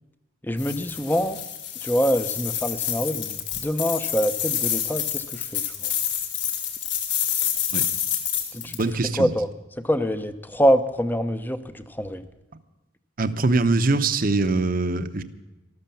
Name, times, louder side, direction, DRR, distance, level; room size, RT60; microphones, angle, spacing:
voice 1, 0.4-1.4 1.8-5.6 8.5-8.8 9.2-9.5 9.8-12.2, equal, 10° left, 11 dB, 0.8 m, -25 dB
sound 1, 0.6-8.8, left 9 dB, 60° left, 2.7 m, -28 dB
voice 2, 8.6-9.3 13.2-15.2, right 3 dB, 45° right, 10 dB, 0.9 m, -23 dB
13.5 x 13.0 x 7.0 m, 1.1 s
head